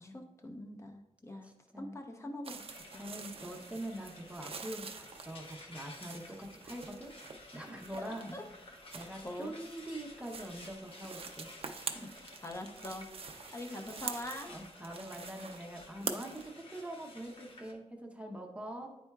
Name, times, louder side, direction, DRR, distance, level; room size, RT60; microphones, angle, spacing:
voice 1, 0.0-1.5 1.8-3.0 8.0-8.4 9.2-9.5 12.4-13.1 13.5-14.5, left 1 dB, 25° left, 4 dB, 0.7 m, -43 dB
voice 2, 1.4-2.0 3.0-7.1 7.5-8.4 8.9-12.1 13.7-13.8 14.4-18.9, right 1 dB, 10° right, 1 dB, 0.7 m, -44 dB
sound 1, 2.4-16.5, right 5 dB, 50° right, 0.5 m, -46 dB
Frying (food), 2.5-17.7, left 2 dB, 50° left, 0.9 m, -54 dB
9.8 x 4.3 x 2.3 m, 0.89 s
wide cardioid pair, 125°, 12 cm